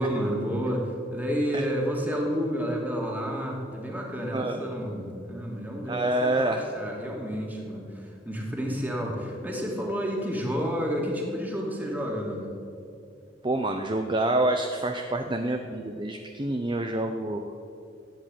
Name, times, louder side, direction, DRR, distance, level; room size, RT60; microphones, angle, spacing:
voice 1, 0.0-12.5, equal, 10° right, -1 dB, 2.5 m, -30 dB
voice 2, 5.9-6.6 13.4-17.5, right 1 dB, 25° right, 5 dB, 0.7 m, -27 dB
14.5 x 8.8 x 9.2 m, 2.5 s
head